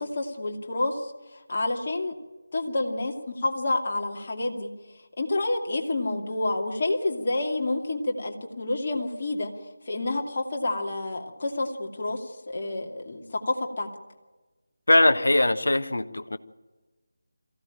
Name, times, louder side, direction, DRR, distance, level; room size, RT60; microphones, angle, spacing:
voice 1, 0.0-2.1 2.5-4.7 5.2-9.5 9.9-13.9, left 2 dB, 40° left, 1 dB, 2.6 m, -29 dB
voice 2, 14.9-16.4, left 2 dB, 65° left, 10 dB, 1.3 m, -21 dB
22.5 x 15.5 x 9.0 m, 1.2 s
figure-of-eight pair, 160°, 0 cm